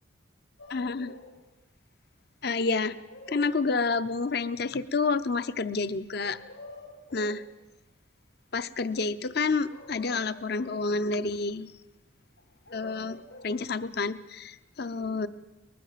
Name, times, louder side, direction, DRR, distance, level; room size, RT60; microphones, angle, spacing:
sound 1, 0.6-1.3 2.6-4.0 6.2-7.4 9.7-10.9 12.4-13.6, left 2 dB, 85° left, 6.7 m, -47 dB
voice 1, 0.7-1.1 2.4-3.0 3.3-6.4 7.1-7.4 8.5-11.7 12.7-15.3, left 4 dB, 50° left, 13 dB, 0.7 m, -29 dB
23.5 x 20.0 x 7.4 m, 1.0 s
head